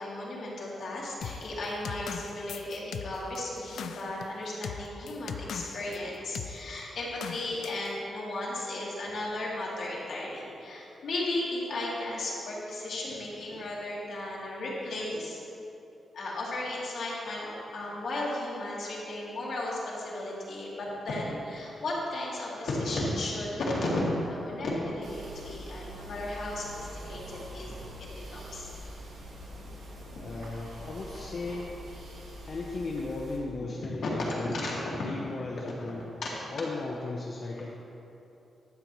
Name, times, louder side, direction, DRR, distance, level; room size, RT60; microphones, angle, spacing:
voice 1, 0.0-15.4 16.1-27.7 28.1-28.7 30.1-30.2 34.0-35.1 35.8-35.9, left 1 dB, 70° left, -6 dB, 2.3 m, -34 dB
sound 1, 1.2-6.0 6.3-6.6 7.2-7.9, left 7 dB, 90° left, 0.4 m, -39 dB
sound 2, 25.0-33.4, equal, 75° right, 1.9 m, -44 dB
voice 2, 30.2-31.7 32.1-32.2 32.4-36.0 36.5-37.7, left 3 dB, 45° left, -3 dB, 0.7 m, -36 dB
12.0 x 8.5 x 3.1 m, 2.9 s
wide cardioid pair, 165°, 0 cm